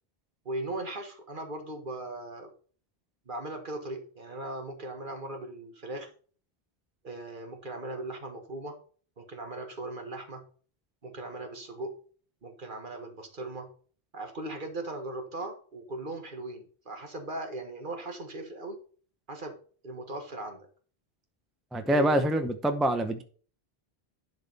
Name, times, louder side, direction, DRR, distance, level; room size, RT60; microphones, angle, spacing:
voice 1, 0.4-2.5 3.3-6.1 7.0-8.8 9.2-10.4 11.0-11.9 12.4-13.7 14.1-18.8 19.3-19.5 19.8-20.7 21.9-22.2, right 2 dB, 50° right, 5 dB, 1.6 m, -38 dB
voice 2, 21.7-23.2, right 1 dB, ahead, 8 dB, 0.6 m, -25 dB
11.0 x 4.0 x 5.4 m, 0.42 s
omnidirectional pair, 1.1 m